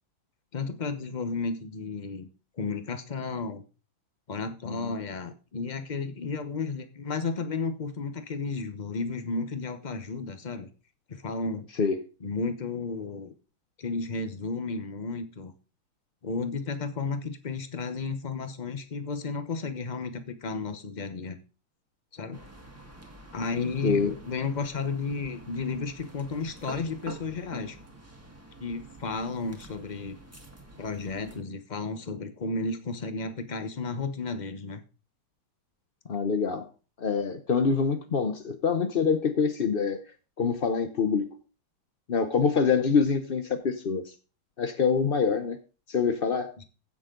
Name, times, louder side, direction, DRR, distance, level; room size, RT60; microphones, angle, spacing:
voice 1, 0.5-2.3 2.6-3.6 4.3-10.7 11.1-11.7 12.2-13.3 13.8-15.5 16.2-21.4 22.1-22.4 23.3-27.8 28.6-30.2 30.8-34.8 46.6-46.7, left 4 dB, 40° left, 9 dB, 0.6 m, -33 dB
sound 1, 22.3-31.4, right 2 dB, 10° right, 1.4 m, -47 dB
voice 2, 23.8-24.1 36.1-36.7 37.0-40.0 40.4-41.3 42.1-44.1 44.6-45.6 45.9-46.5, left 5 dB, 80° left, 9 dB, 0.5 m, -25 dB
16.0 x 6.4 x 3.8 m, 0.34 s
omnidirectional pair, 2.3 m